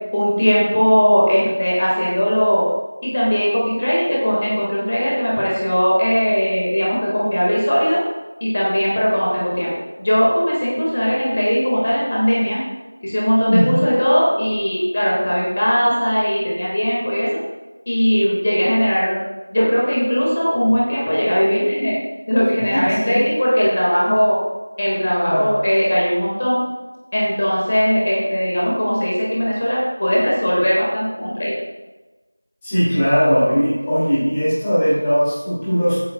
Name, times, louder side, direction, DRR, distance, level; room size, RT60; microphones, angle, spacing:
voice 1, 0.1-2.6 3.0-8.0 8.4-9.7 10.0-12.6 13.0-17.3 17.9-19.2 19.5-22.0 22.3-24.4 24.8-26.6 27.1-31.5, equal, 25° left, -5 dB, 1.7 m, -19 dB
voice 2, 13.5-13.8 22.9-23.2 25.2-25.5 32.6-36.0, equal, 10° left, -13 dB, 2.2 m, -18 dB
13.5 x 8.6 x 2.2 m, 1.2 s
figure-of-eight pair, 175°, 0 cm